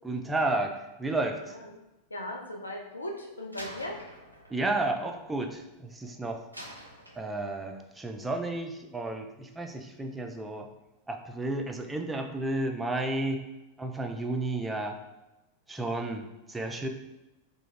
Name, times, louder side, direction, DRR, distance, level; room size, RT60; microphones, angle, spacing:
voice 1, 0.0-0.7 1.0-1.6 4.5-6.4 7.2-10.7 11.1-13.5 13.8-15.0 15.7-16.9, right 2 dB, 10° right, 4 dB, 0.3 m, -32 dB
voice 2, 1.4-1.8 2.1-3.9, left 1 dB, 80° left, 1 dB, 0.3 m, -38 dB
Slam, 3.5-6.0 6.5-7.8, equal, 90° right, 0.4 m, -47 dB
2.3 x 2.1 x 3.2 m, 0.99 s
figure-of-eight pair, 90°, 0 cm